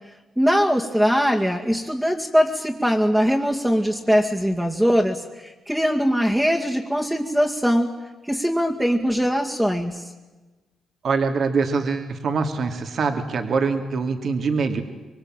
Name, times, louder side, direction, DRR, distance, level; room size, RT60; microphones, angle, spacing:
voice 1, 0.4-7.9 8.2-10.1, equal, 5° right, -2 dB, 2.2 m, -21 dB
voice 2, 11.0-14.8, right 4 dB, 55° right, 5 dB, 2.7 m, -24 dB
25.5 x 23.5 x 9.1 m, 1.2 s
cardioid pair, 100°, 0 cm